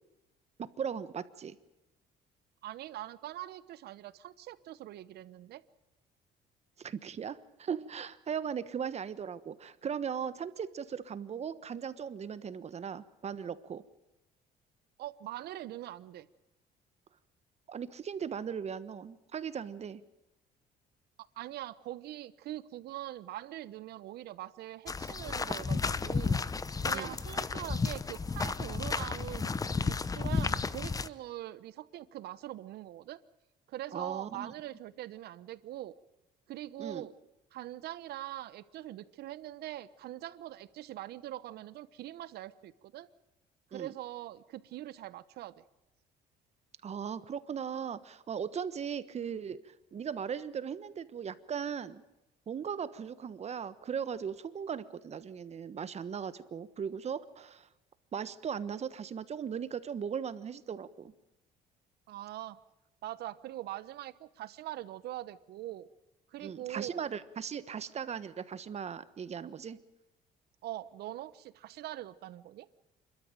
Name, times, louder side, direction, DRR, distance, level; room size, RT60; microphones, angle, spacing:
voice 1, 0.6-1.5 6.8-13.8 17.7-20.0 26.9-27.2 33.9-34.5 36.8-37.1 43.7-43.9 46.8-52.0 52.5-57.7 58.1-61.1 66.4-69.8, right 7 dB, 40° right, 14 dB, 1.3 m, -38 dB
voice 2, 2.6-5.6 15.0-16.3 21.2-26.4 26.8-33.2 33.7-35.9 36.5-37.1 37.5-43.1 43.7-45.6 62.1-62.6 63.0-65.9 66.3-67.0 70.6-72.7, right 14 dB, 70° right, 16 dB, 1.1 m, -43 dB
sound 1, 24.9-31.1, left 4 dB, 20° left, 0.8 m, -32 dB
28.0 x 13.0 x 9.1 m, 0.94 s
cardioid pair, 110°, 17 cm